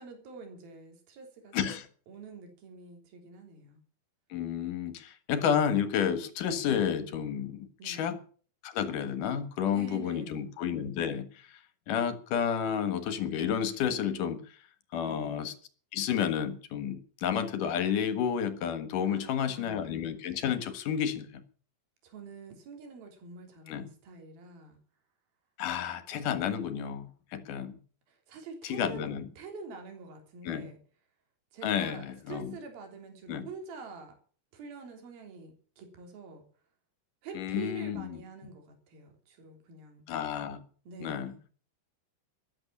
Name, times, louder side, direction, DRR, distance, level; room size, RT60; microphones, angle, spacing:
voice 1, 0.0-1.8 2.1-3.8 7.8-8.1 9.7-10.4 15.0-15.5 19.0-19.9 22.0-24.8 28.1-30.8 31.5-34.1 34.5-36.4 37.2-40.0 40.8-41.4, right 4 dB, 70° right, 5.1 m, -46 dB
voice 2, 1.5-1.9 4.3-8.2 8.6-11.6 11.9-14.6 14.9-15.5 15.9-21.4 23.7-23.9 25.6-27.8 28.6-29.3 30.4-30.7 31.6-32.6 33.3-33.5 37.3-38.2 40.1-40.6 41.0-41.3, left 8 dB, 65° left, 2.8 m, -31 dB
13.5 x 11.5 x 7.2 m
omnidirectional pair, 4.5 m